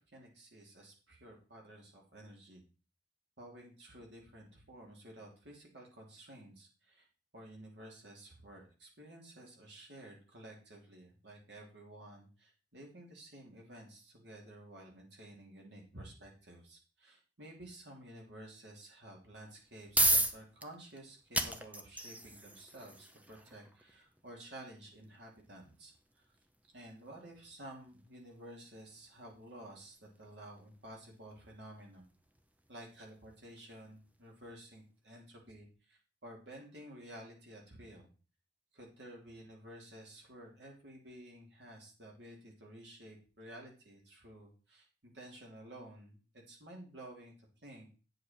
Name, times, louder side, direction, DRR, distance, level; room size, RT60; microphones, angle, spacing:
voice 1, 0.0-2.6 3.4-7.1 7.3-25.9 26.7-32.1 32.7-38.1 38.7-46.2 46.5-47.9, right 1 dB, 70° right, 0 dB, 2.9 m, -52 dB
sound 1, 19.5-34.3, right 1 dB, 10° right, 0.8 m, -39 dB
8.9 x 6.7 x 4.5 m, 0.35 s
head